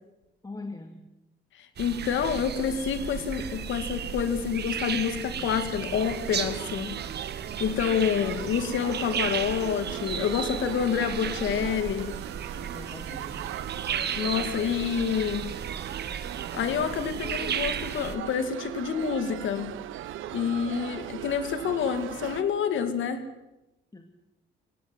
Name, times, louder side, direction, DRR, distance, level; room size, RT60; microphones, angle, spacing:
voice 1, 0.4-1.0 12.5-13.5 23.9-24.0, left 2 dB, 20° left, 5 dB, 2.2 m, -41 dB
voice 2, 1.6-7.0 7.6-12.1 14.2-15.5 16.5-19.7 20.3-23.2, left 7 dB, 75° left, 9 dB, 2.6 m, -28 dB
sound 1, 1.8-18.2, right 8 dB, 55° right, 1.6 m, -35 dB
sound 2, 5.9-22.4, right 12 dB, 80° right, 1.0 m, -39 dB
23.0 x 17.5 x 8.1 m, 0.96 s
cardioid pair, 90°, 20 cm